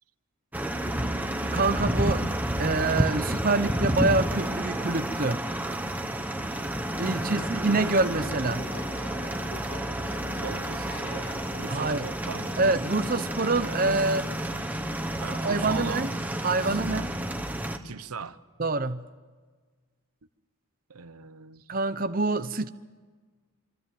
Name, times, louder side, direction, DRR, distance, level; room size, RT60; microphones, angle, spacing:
sound 1, 0.5-17.8, right 1 dB, 5° right, 1.4 m, -30 dB
voice 1, 1.5-2.2 2.6-5.4 7.0-8.7 11.7-12.0 12.6-14.3 15.3-16.1 16.4-17.1 18.6-19.1 21.7-22.7, right 3 dB, 40° right, 10 dB, 0.8 m, -26 dB
sound 2, 7.0-12.1, left 3 dB, 45° left, 0.8 m, -44 dB
voice 2, 10.3-12.6 15.2-16.1 16.6-16.8 17.8-18.4 20.9-21.7, right 5 dB, 85° right, 13 dB, 1.0 m, -40 dB
27.0 x 24.5 x 7.7 m, 1.4 s
head